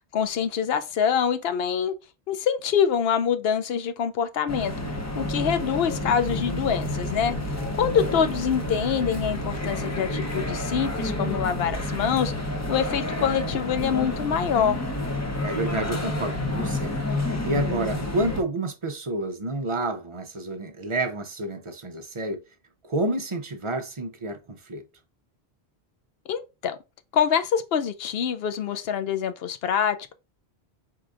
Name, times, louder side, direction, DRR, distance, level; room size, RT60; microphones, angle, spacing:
voice 1, 0.1-1.9 2.3-4.7 5.2-7.4 7.8-12.3 12.7-14.8 26.3-26.8 27.1-30.1, left 7 dB, 75° left, 0.8 m, -25 dB
sound 1, 4.5-18.4, left 1 dB, 20° left, 0.6 m, -29 dB
voice 2, 15.4-17.0 17.4-22.4 22.8-24.8, right 2 dB, 40° right, 0.5 m, -29 dB
4.6 x 3.7 x 2.4 m
omnidirectional pair, 1.1 m